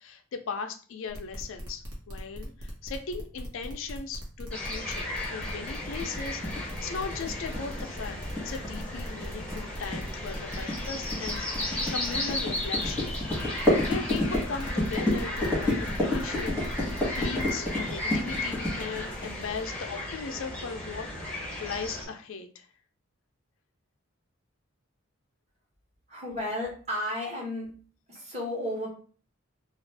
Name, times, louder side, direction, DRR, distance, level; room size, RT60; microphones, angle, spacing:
voice 1, 0.0-13.1 13.9-16.9 17.2-22.7, left 5 dB, 70° left, 6 dB, 0.4 m, -38 dB
sound 1, 1.1-17.5, equal, 90° right, 1.0 m, -41 dB
sound 2, 4.5-22.0, left 1 dB, 5° left, 0.6 m, -35 dB
sound 3, 5.8-19.6, left 1 dB, 10° right, 1.1 m, -30 dB
voice 2, 26.1-27.7 28.1-28.9, left 1 dB, 30° right, -3 dB, 1.1 m, -33 dB
2.5 x 2.3 x 3.3 m, 0.40 s
head